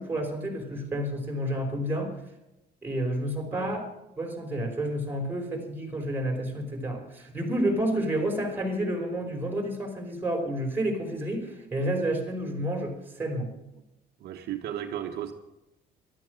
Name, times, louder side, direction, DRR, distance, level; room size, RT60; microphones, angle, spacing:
voice 1, 0.0-2.1 2.8-3.9 4.2-13.5, right 1 dB, 10° right, 2 dB, 5.1 m, -30 dB
voice 2, 14.2-15.3, right 10 dB, 75° right, 4 dB, 1.5 m, -34 dB
14.0 x 12.5 x 6.6 m, 0.90 s
cardioid pair, 110°, 17 cm